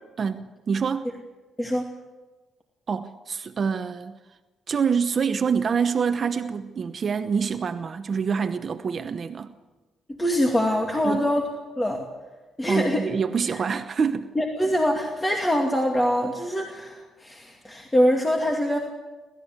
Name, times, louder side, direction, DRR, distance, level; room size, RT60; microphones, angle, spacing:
voice 1, 0.2-1.1 2.9-4.2 4.7-9.5 11.0-11.3 12.7-14.3, right 6 dB, 45° right, 0.9 m, -26 dB
voice 2, 10.2-11.5 11.8-12.0 12.6-13.0 14.4-18.8, equal, 15° left, 2.5 m, -24 dB
28.0 x 13.5 x 8.1 m
cardioid pair, 90°, 0 cm